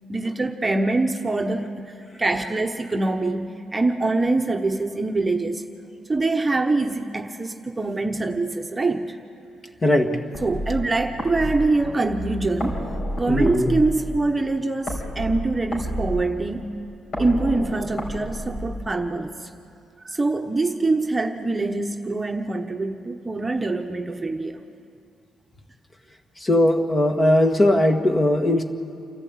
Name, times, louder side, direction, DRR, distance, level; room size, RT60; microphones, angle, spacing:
voice 1, 0.1-1.9 2.2-5.7 6.1-9.2 10.4-12.8 13.2-16.8 17.2-19.5 20.0-24.6, right 2 dB, 20° right, 4 dB, 1.1 m, -24 dB
voice 2, 9.8-10.2 13.3-13.7 26.4-28.6, left 1 dB, 30° left, 5 dB, 1.7 m, -19 dB
sound 1, 10.3-19.3, equal, 50° left, 4.8 m, -31 dB
28.5 x 12.0 x 8.6 m, 2.5 s
cardioid pair, 90°, 0 cm